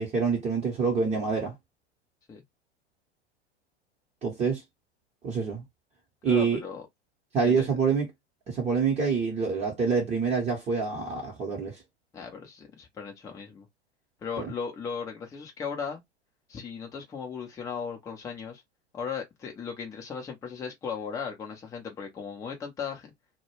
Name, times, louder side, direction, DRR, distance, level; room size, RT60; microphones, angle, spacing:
voice 1, 0.0-1.5 4.2-4.6 5.2-5.6 6.2-6.6 7.3-8.1 8.5-11.8 14.4-14.5, right 5 dB, 20° right, 0.8 m, -26 dB
voice 2, 6.2-6.8 7.4-7.8 12.1-13.7 14.2-16.0 16.5-18.6 18.9-23.1, left 6 dB, 10° left, 0.5 m, -37 dB
2.1 x 2.1 x 3.0 m
figure-of-eight pair, 95°, 33 cm